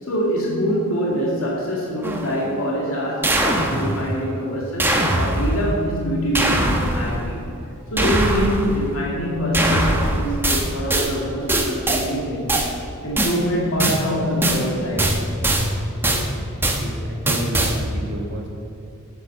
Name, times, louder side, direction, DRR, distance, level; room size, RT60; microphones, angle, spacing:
voice 1, 0.0-7.4 7.9-12.5 13.0-15.1 16.1-16.2, equal, 70° left, -4 dB, 2.2 m, -25 dB
sound 1, 2.0-2.5 3.2-4.2 4.8-5.8 6.3-7.3 8.0-8.9 9.5-11.1 11.5-12.1 12.5-12.7 13.2-13.4 13.8-14.0 14.4-14.7 15.0-15.7 16.0-16.3 16.6-16.8 17.3-17.8, right 1 dB, 10° right, 1.0 m, -21 dB
voice 2, 16.8-18.5, right 1 dB, 55° right, 0 dB, 1.4 m, -30 dB
9.0 x 8.3 x 6.8 m, 2.8 s
head